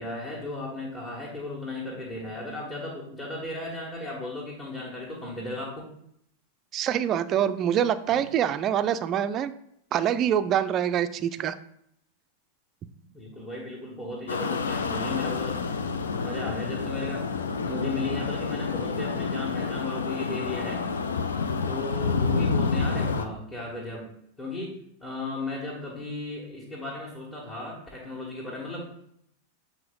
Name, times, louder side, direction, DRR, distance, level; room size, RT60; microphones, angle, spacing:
voice 1, 0.0-5.9 8.1-8.3 13.1-15.6 16.2-17.3 17.6-20.8 21.7-24.1 24.4-28.9, left 2 dB, 20° left, -6 dB, 1.8 m, -35 dB
voice 2, 6.7-9.5 9.9-11.5, right 9 dB, 30° right, 12 dB, 0.4 m, -25 dB
sound 1, 14.3-23.3, left 4 dB, 70° left, 0.5 m, -28 dB
7.6 x 4.4 x 3.8 m, 0.72 s
figure-of-eight pair, 90°, 0 cm